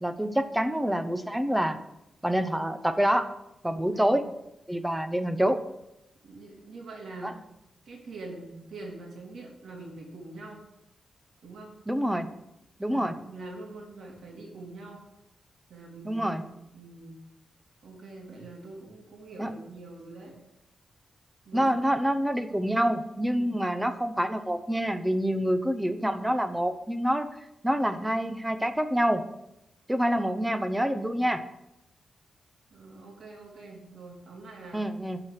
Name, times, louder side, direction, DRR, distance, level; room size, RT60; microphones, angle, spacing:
voice 1, 0.0-1.8 2.2-3.3 3.6-4.2 4.7-5.6 7.2-7.3 11.9-12.3 12.8-13.1 16.0-16.4 19.4-19.5 21.5-27.3 27.6-29.2 29.9-31.4 34.7-35.2, equal, 5° right, 10 dB, 0.8 m, -26 dB
voice 2, 3.7-4.2 6.2-7.4 7.8-10.6 11.4-11.7 12.9-15.0 15.7-17.2 17.8-20.3 21.4-22.0 23.3-23.7 32.7-34.8, right 2 dB, 75° right, -1 dB, 3.0 m, -44 dB
12.0 x 4.9 x 5.8 m, 0.88 s
wide cardioid pair, 105°, 0 cm